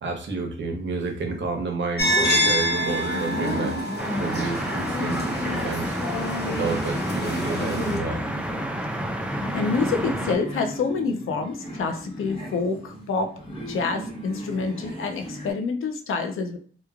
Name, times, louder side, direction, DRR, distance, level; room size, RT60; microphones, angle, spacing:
voice 1, 0.0-3.8 4.2-6.0 6.4-8.2, right 3 dB, 65° right, 4 dB, 0.7 m, -30 dB
sound 1, 2.0-8.0, equal, 55° left, 0.9 m, -26 dB
sound 2, 2.6-15.5, right 1 dB, 25° left, 0.9 m, -37 dB
sound 3, 4.0-10.4, right 1 dB, 5° right, 0.4 m, -30 dB
voice 2, 9.5-13.4 13.7-16.6, left 4 dB, 80° left, 6 dB, 0.5 m, -27 dB
3.0 x 2.2 x 2.3 m, 0.44 s
cardioid pair, 80°, 21 cm